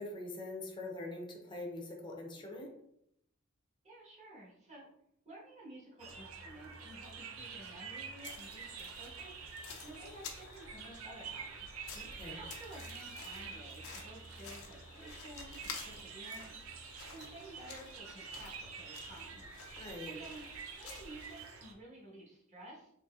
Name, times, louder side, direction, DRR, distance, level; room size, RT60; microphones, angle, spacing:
voice 1, 0.0-2.7 11.9-12.4 19.8-20.2, left 2 dB, 20° left, 1 dB, 0.6 m, -43 dB
voice 2, 3.8-4.9 5.2-9.4 9.8-11.7 12.2-16.6 17.1-19.4 20.0-22.9, right 1 dB, 35° right, -5 dB, 1.3 m, -53 dB
sound 1, 6.0-21.7, right 6 dB, 80° right, 0.6 m, -48 dB
sound 2, 8.2-21.3, left 5 dB, 85° left, 0.7 m, -51 dB
3.9 x 3.1 x 2.4 m, 0.74 s
head